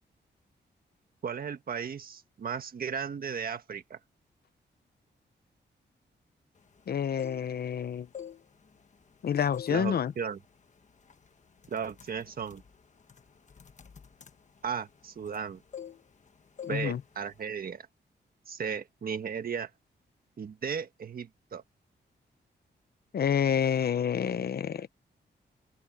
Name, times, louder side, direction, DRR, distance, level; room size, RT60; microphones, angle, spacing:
voice 1, 1.2-4.0 9.7-10.4 11.7-12.6 14.6-15.6 16.7-17.9 18.5-19.7 20.4-21.6, right 6 dB, 55° right, 1.6 m, -35 dB
voice 2, 6.9-8.1 9.2-10.1 16.7-17.0 23.1-25.0, left 8 dB, 60° left, 0.8 m, -28 dB
sound 1, 7.0-7.7 8.1-9.1 9.5-9.9 10.2-10.5 11.1-11.3 11.6-15.4 15.7-16.3 16.6-16.9 17.1-17.4, left 8 dB, 40° left, 1.3 m, -45 dB
open air
wide cardioid pair, 140°, 18 cm